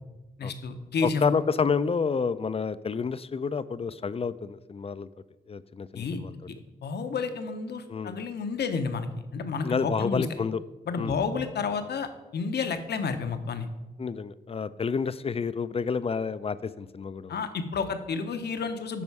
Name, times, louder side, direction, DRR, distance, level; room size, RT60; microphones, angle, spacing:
voice 1, 0.4-1.2 5.9-6.2 6.8-10.2 10.9-13.7 17.3-19.0, left 5 dB, 75° left, 8 dB, 0.8 m, -31 dB
voice 2, 1.0-5.1 5.5-6.4 7.9-8.2 9.6-10.6 11.0-11.2 14.0-17.4, left 5 dB, 35° left, 15 dB, 0.4 m, -29 dB
11.0 x 4.3 x 4.7 m, 1.1 s
cardioid pair, 65°, 18 cm